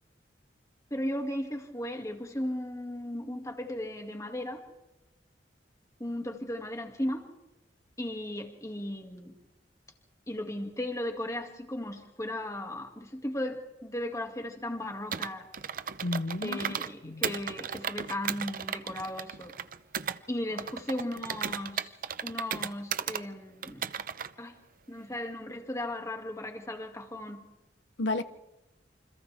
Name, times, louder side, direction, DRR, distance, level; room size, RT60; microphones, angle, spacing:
voice 1, 0.9-4.6 6.0-7.3 8.0-9.4 10.3-15.5 16.4-19.6 20.3-22.0 22.2-23.9 24.4-24.6 24.9-27.5, left 1 dB, 20° left, 2.4 m, -36 dB
Computer keyboard, 15.1-16.9 17.2-20.2 20.6-23.2 23.6-24.3, right 8 dB, 50° right, 0.7 m, -35 dB
voice 2, 16.0-16.7 17.0-17.2 28.0-28.2, left 2 dB, 90° left, 0.9 m, -31 dB
28.5 x 26.0 x 3.6 m
head